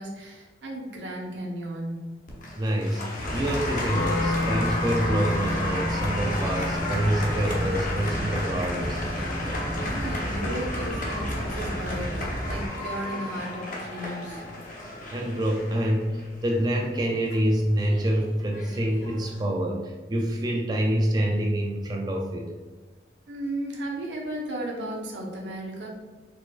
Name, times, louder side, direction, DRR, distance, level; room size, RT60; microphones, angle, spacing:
voice 1, 0.0-2.1 9.7-14.4 23.3-25.9, right 1 dB, 85° right, -1 dB, 1.0 m, -35 dB
Applause, 2.3-19.4, left 1 dB, 45° left, 0.8 m, -34 dB
voice 2, 2.6-9.0 15.1-22.5, right 1 dB, 25° right, 0 dB, 0.4 m, -26 dB
sound 1, 3.2-12.7, equal, 5° left, 1.0 m, -32 dB
Wind instrument woodwind instrument, 3.9-10.0, left 2 dB, 70° left, 0.3 m, -33 dB
4.5 x 4.1 x 2.4 m, 1.3 s
head